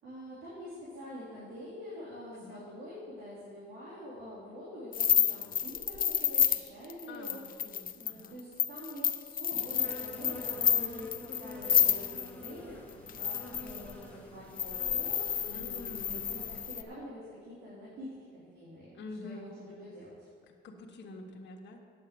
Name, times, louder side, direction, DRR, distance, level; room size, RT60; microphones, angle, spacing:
voice 1, 0.0-7.4 7.9-20.3, equal, 80° right, -9 dB, 3.8 m, -46 dB
voice 2, 2.3-2.6 7.1-8.4 15.5-16.2 18.9-19.5 20.5-21.8, left 2 dB, 65° left, 0 dB, 1.5 m, -47 dB
sound 1, 4.9-12.5 13.1-13.9 14.6-16.8, left 9 dB, 45° left, 0.6 m, -29 dB
Insect, 9.5-16.7, left 1 dB, 5° left, 2.2 m, -47 dB
8.7 x 8.6 x 7.7 m, 2.1 s
cardioid pair, 90°, 20 cm